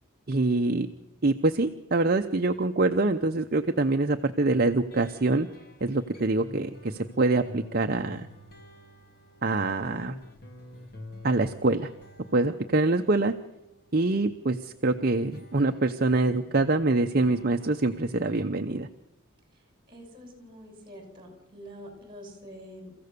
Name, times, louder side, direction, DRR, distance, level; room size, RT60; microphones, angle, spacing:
voice 1, 0.3-0.9 1.2-5.5 5.8-8.3 9.4-10.1 11.2-11.9 12.3-13.3 13.9-18.9, right 2 dB, 45° right, 6 dB, 0.7 m, -25 dB
sound 1, 4.8-14.3 14.9-18.4, left 1 dB, 45° left, 2.1 m, -48 dB
voice 2, 19.9-22.9, equal, 20° right, 3 dB, 6.0 m, -46 dB
30.0 x 15.5 x 6.8 m, 0.92 s
head